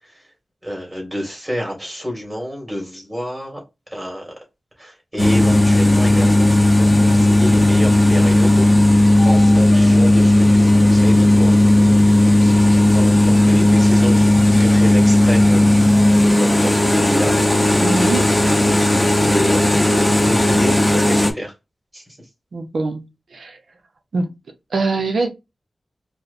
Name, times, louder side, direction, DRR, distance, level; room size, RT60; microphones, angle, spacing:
voice 1, 0.6-3.6 3.9-4.3 4.8-11.6 12.4-15.7 16.0-17.4 18.8-21.5 21.9-22.0, equal, 10° right, 1.9 m, -29 dB
sound 1, 5.2-21.3, left 1 dB, 15° left, 0.7 m, -14 dB
voice 2, 17.8-18.3 22.5-23.0 23.3-23.6 24.1-24.3 24.7-25.3, right 3 dB, 70° right, 0.7 m, -22 dB
4.7 x 2.2 x 2.5 m
wide cardioid pair, 105°, 0 cm